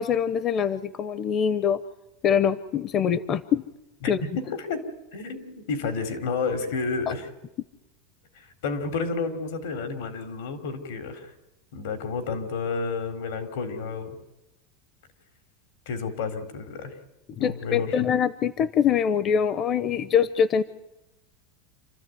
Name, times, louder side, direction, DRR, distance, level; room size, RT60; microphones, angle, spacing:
voice 1, 0.0-1.8 2.2-3.6 4.1-4.2 7.1-7.2 17.4-20.6, left 8 dB, 35° left, 16 dB, 0.7 m, -24 dB
voice 2, 4.0-4.9 5.1-7.3 8.6-11.3 11.7-14.2 15.8-16.9 17.4-18.0, left 4 dB, 80° left, 8 dB, 3.5 m, -30 dB
28.0 x 13.5 x 9.3 m, 0.99 s
supercardioid pair, 140°, 0 cm